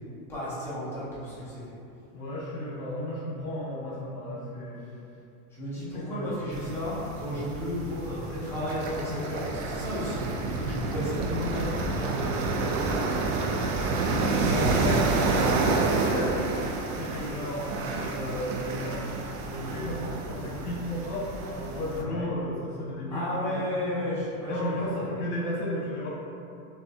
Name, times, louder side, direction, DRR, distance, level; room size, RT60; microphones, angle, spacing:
voice 1, 0.3-1.6 5.6-10.2 10.5-13.6 22.0-22.3 23.1-24.5 24.9-25.0, left 1 dB, 5° left, -11 dB, 0.4 m, -33 dB
voice 2, 2.1-4.8 5.9-6.4 14.1-16.3 16.9-19.0 19.4-24.0 24.4-26.1, left 1 dB, 65° left, -6 dB, 1.3 m, -34 dB
sound 1, 6.5-22.0, right 3 dB, 70° right, 0.6 m, -29 dB
6.3 x 2.3 x 2.6 m, 2.6 s
supercardioid pair, 165°, 45 cm